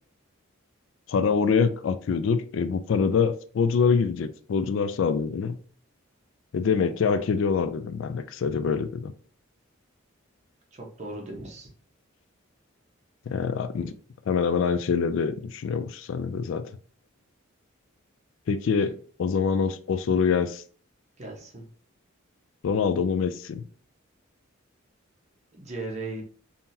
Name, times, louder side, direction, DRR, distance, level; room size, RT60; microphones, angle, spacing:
voice 1, 1.1-5.6 6.5-9.1 13.3-13.9 14.3-16.7 18.5-20.6 22.6-23.6, left 5 dB, 65° left, 0.3 m, -25 dB
voice 2, 10.7-11.7 18.8-18.9 21.2-21.7 25.5-26.2, right 2 dB, 35° right, 1.0 m, -37 dB
3.7 x 2.8 x 2.7 m
head